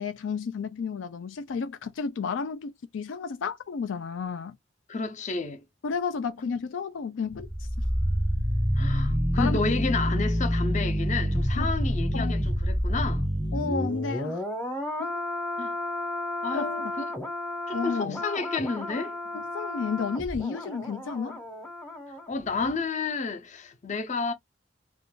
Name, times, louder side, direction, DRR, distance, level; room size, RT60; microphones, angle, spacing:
voice 1, 0.0-4.6 5.8-7.5 9.4-9.6 11.5-11.7 12.1-12.3 13.5-14.4 15.0-15.2 16.5-16.9 17.7-18.2 19.3-21.4, left 5 dB, 85° left, 0.4 m, -32 dB
voice 2, 4.9-5.6 8.8-13.3 15.6-15.7 16.4-17.0 17.7-19.2 22.3-24.3, left 4 dB, 40° left, 0.6 m, -31 dB
sound 1, 7.3-22.3 22.5-22.7, equal, 10° left, 0.8 m, -29 dB
2.5 x 2.3 x 3.6 m
head